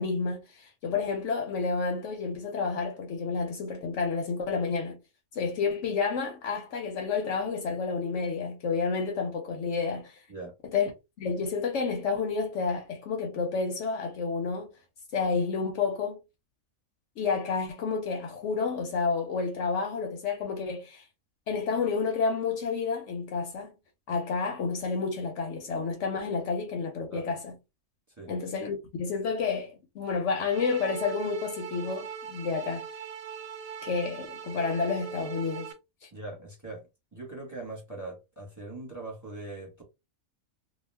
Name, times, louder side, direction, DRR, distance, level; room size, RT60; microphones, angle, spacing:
voice 1, 0.0-5.0 5.3-10.2 10.7-10.9 11.2-14.7 15.1-16.2 17.2-21.0 21.5-23.7 24.1-27.5 28.3-32.9 33.8-35.7 36.0-36.1, left 5 dB, 65° left, 0.9 m, -30 dB
sound 1, 30.5-35.7, right 7 dB, 65° right, 0.9 m, -40 dB
voice 2, 36.1-36.8 37.1-39.8, right 2 dB, 15° right, 1.0 m, -41 dB
2.3 x 2.2 x 3.3 m
omnidirectional pair, 1.4 m